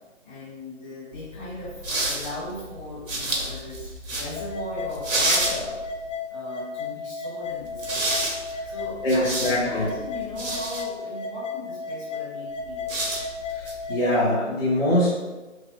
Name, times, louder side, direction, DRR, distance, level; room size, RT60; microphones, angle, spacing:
voice 1, 0.2-5.8 6.3-8.2 8.6-13.0, left 1 dB, ahead, -21 dB, 0.7 m, -38 dB
sound 1, 1.1-6.1 7.6-10.8 12.6-13.9, right 2 dB, 80° right, 1.2 m, -30 dB
sound 2, 4.4-14.4, left 4 dB, 70° left, 0.7 m, -34 dB
voice 2, 9.0-9.9 13.5-15.2, left 1 dB, 50° left, -9 dB, 1.2 m, -23 dB
3.7 x 2.8 x 3.2 m, 1.1 s
figure-of-eight pair, 160°, 38 cm